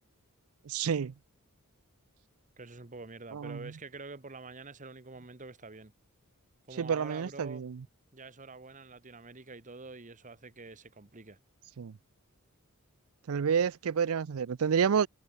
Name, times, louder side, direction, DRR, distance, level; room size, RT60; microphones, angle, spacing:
voice 1, 0.7-1.1 3.3-3.7 6.8-7.8 11.8-12.0 13.3-15.1, right 7 dB, 70° right, 0.4 m, -29 dB
voice 2, 2.6-5.9 6.7-7.6 8.1-11.4, right 3 dB, 35° right, 1.4 m, -47 dB
head